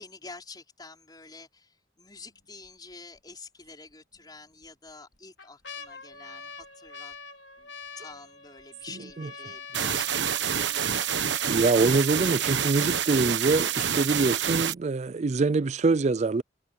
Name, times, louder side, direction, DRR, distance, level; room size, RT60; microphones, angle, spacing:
voice 1, 0.0-7.1 7.6-7.7 8.0-11.3, left 3 dB, 25° left, 5.2 m, -48 dB
sound 1, 2.2-2.7 3.1-3.2 4.2-4.7 5.1-13.1 13.8-13.9 14.1-14.6 15.0-15.1, left 4 dB, 80° left, 3.8 m, -45 dB
sound 2, 9.7-14.7, right 8 dB, 75° right, 1.2 m, -27 dB
voice 2, 11.5-16.4, right 3 dB, 40° right, 0.4 m, -24 dB
head